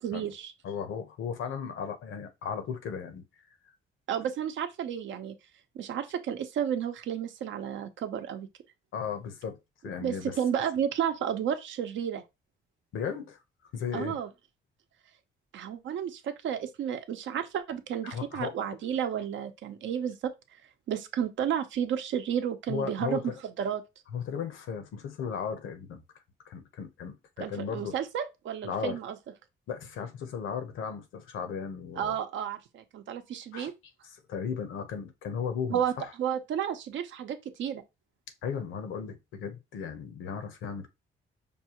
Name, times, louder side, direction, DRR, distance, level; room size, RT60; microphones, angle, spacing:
voice 1, 0.0-0.5 4.1-5.3 5.7-8.5 10.0-12.2 13.9-14.3 15.5-20.3 20.9-23.8 27.4-29.2 32.0-33.7 35.7-35.9 36.2-37.8, right 9 dB, 70° right, 0.7 m, -32 dB
voice 2, 0.6-3.2 8.9-9.6 9.8-10.4 12.9-13.4 13.7-14.2 18.0-18.7 22.7-23.4 24.1-26.0 26.4-27.9 28.6-29.0 29.7-32.2 33.5-33.7 34.0-36.1 38.4-40.9, left 7 dB, 80° left, 0.9 m, -36 dB
5.3 x 2.3 x 2.9 m
cardioid pair, 90°, 20 cm